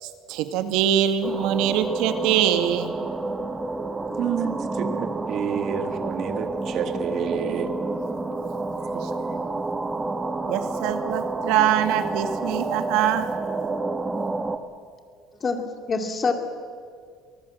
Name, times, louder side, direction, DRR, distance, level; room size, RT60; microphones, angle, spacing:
voice 1, 0.0-2.9 8.9-9.1 10.5-13.3, right 10 dB, 75° right, 8 dB, 1.8 m, -23 dB
sound 1, 1.2-14.6, right 3 dB, 15° right, 1.2 m, -29 dB
voice 2, 4.2-7.7, right 7 dB, 50° right, 7 dB, 2.0 m, -29 dB
voice 3, 15.4-16.3, left 4 dB, 25° left, 5 dB, 2.5 m, -25 dB
24.5 x 19.5 x 7.7 m, 2.1 s
cardioid pair, 140°, 0 cm